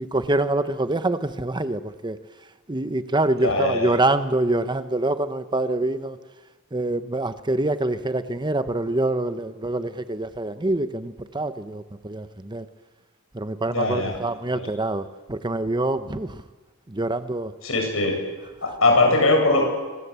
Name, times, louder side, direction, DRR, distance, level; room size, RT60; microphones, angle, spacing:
voice 1, 0.0-2.2 2.7-6.2 6.7-12.7 13.3-16.4 16.9-17.5, right 2 dB, 20° right, 11 dB, 0.9 m, -25 dB
voice 2, 3.4-3.9 13.7-14.2 14.5-14.6 17.6-18.1 18.6-19.8, left 2 dB, 80° left, 2 dB, 7.8 m, -21 dB
25.0 x 21.0 x 8.2 m, 1.3 s
head